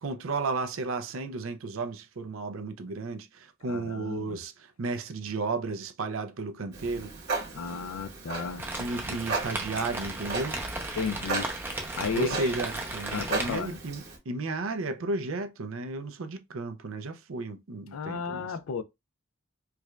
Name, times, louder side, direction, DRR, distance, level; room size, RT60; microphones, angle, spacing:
voice 1, 0.0-7.1 8.8-10.6 12.2-18.5, right 3 dB, 75° right, 0.5 m, -33 dB
voice 2, 3.7-4.4 7.5-8.6 11.0-11.5 11.9-12.5 13.1-13.8 17.9-18.8, left 5 dB, 85° left, 0.4 m, -33 dB
Clock, 6.7-14.2, right 3 dB, 55° right, 1.3 m, -36 dB
Rain, 8.6-13.6, right 2 dB, 10° right, 0.5 m, -36 dB
4.6 x 2.4 x 2.2 m
head